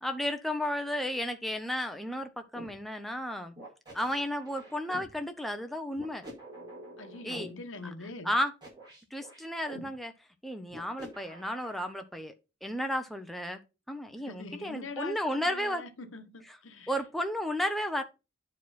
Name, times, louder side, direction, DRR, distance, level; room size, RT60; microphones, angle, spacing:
voice 1, 0.0-3.5 3.9-6.2 7.2-7.5 8.2-8.5 9.1-10.1 10.4-12.3 12.6-13.6 13.9-15.8 16.9-18.0, equal, ahead, 0.7 m, -33 dB
sound 1, 2.5-2.7 3.6-5.1 5.9-7.5 8.3-9.8 10.7-12.0, equal, 20° right, 4.8 m, -47 dB
voice 2, 7.0-8.3 14.3-16.9, left 3 dB, 75° left, 1.3 m, -43 dB
9.7 x 4.8 x 4.2 m
head